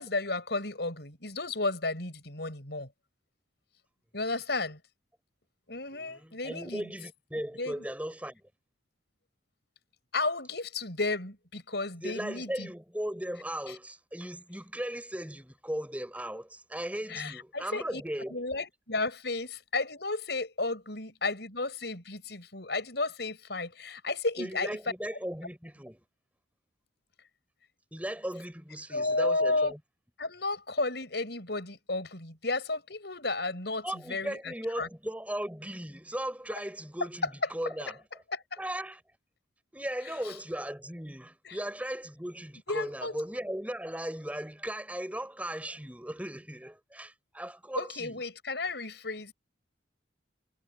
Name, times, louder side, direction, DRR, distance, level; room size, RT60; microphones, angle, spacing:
voice 1, 0.0-2.9 4.1-4.8 5.7-6.8 7.6-7.8 10.1-12.7 17.1-18.0 18.3-24.7 28.9-29.7 30.2-34.9 38.3-38.6 40.2-40.3 41.5-41.6 42.7-43.1 47.8-49.3, left 3 dB, 65° left, 6.6 m, -33 dB
voice 2, 5.9-8.4 12.0-18.4 24.4-26.0 27.9-29.8 33.8-38.0 38.6-39.0 39.7-48.2, right 1 dB, 10° right, 4.0 m, -37 dB
head